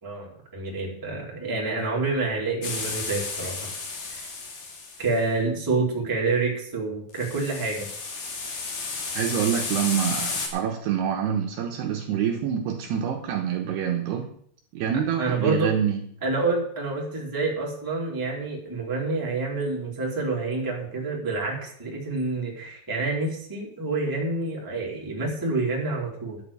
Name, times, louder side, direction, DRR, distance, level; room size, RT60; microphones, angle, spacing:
voice 1, 0.0-3.7 4.1-4.2 5.0-7.9 15.2-15.7 16.2-26.4, right 3 dB, 5° right, -3 dB, 2.1 m, -28 dB
sound 1, 2.6-5.2 7.1-10.5, left 4 dB, 60° left, 4.3 m, -32 dB
voice 2, 9.1-14.3 14.7-16.0, right 8 dB, 75° right, 3 dB, 2.7 m, -26 dB
11.0 x 7.4 x 8.4 m, 0.63 s
omnidirectional pair, 5.5 m